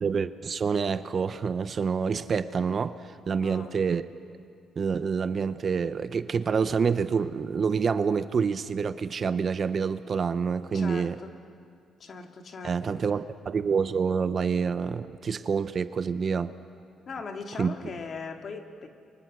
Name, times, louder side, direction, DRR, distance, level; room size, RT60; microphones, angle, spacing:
voice 1, 0.0-2.9 3.3-4.0 4.8-11.2 12.6-16.5 17.6-17.7, right 6 dB, 45° right, 12 dB, 0.9 m, -27 dB
voice 2, 3.4-3.8 10.7-11.4 12.0-13.0 17.1-18.9, left 4 dB, 50° left, 4 dB, 2.2 m, -39 dB
29.5 x 24.0 x 6.3 m, 2.2 s
cardioid pair, 90°, 0 cm